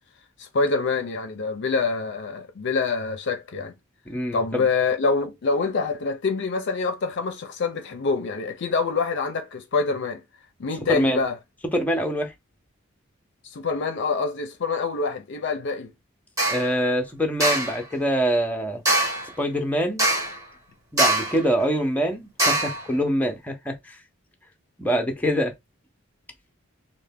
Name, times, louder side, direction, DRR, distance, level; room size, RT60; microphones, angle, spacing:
voice 1, 0.4-3.7 4.3-10.2 10.6-11.3 13.4-15.9, left 4 dB, 60° left, 0.5 m, -26 dB
voice 2, 4.1-4.6 10.9-11.2 11.7-12.3 16.5-18.8 19.4-20.0 20.9-24.0 24.8-25.5, equal, 10° left, 0.6 m, -24 dB
sound 1, 16.4-16.7 17.4-17.8 18.9-19.3 20.0-20.4 21.0-21.4 22.4-22.8, right 1 dB, 15° right, 0.9 m, -22 dB
3.2 x 2.1 x 3.4 m
head